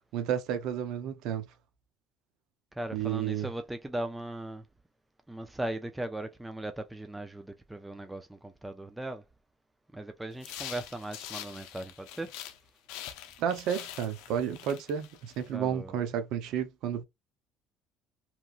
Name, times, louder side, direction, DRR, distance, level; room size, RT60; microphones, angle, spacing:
voice 1, 0.1-1.4 2.9-3.5 13.4-17.0, right 9 dB, 75° right, 0.6 m, -31 dB
voice 2, 2.8-4.6 5.3-9.2 9.9-12.3 15.5-15.9, right 1 dB, 10° right, 0.4 m, -38 dB
sound 1, 10.4-12.6 12.9-15.5, left 11 dB, 85° left, 0.5 m, -44 dB
2.9 x 2.4 x 2.4 m
supercardioid pair, 95°, 0 cm